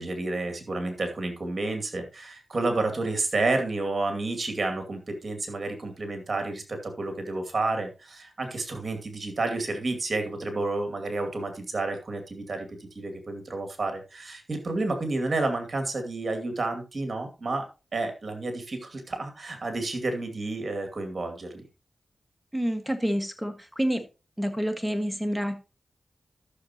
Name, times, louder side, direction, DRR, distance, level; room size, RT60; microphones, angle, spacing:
voice 1, 0.0-17.7 17.9-21.6, right 2 dB, 55° right, 5 dB, 2.4 m, -30 dB
voice 2, 22.5-24.0 24.4-25.6, equal, 5° right, 7 dB, 1.8 m, -28 dB
13.5 x 6.6 x 3.0 m, 0.30 s
cardioid pair, 50°, 0 cm